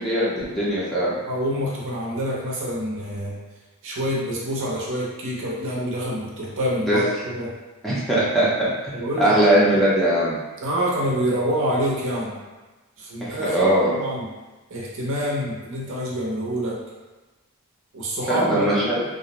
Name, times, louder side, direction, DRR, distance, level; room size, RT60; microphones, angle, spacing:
voice 1, 0.0-1.1 6.9-7.0 7.8-10.4 13.2-13.9 18.3-19.0, right 1 dB, ahead, -9 dB, 0.5 m, -20 dB
voice 2, 1.3-3.4 3.8-7.5 8.9-9.3 10.6-12.4 13.0-14.3 14.7-16.8 17.9-18.9, equal, 60° right, -4 dB, 0.6 m, -26 dB
2.4 x 2.0 x 2.8 m, 1.2 s
head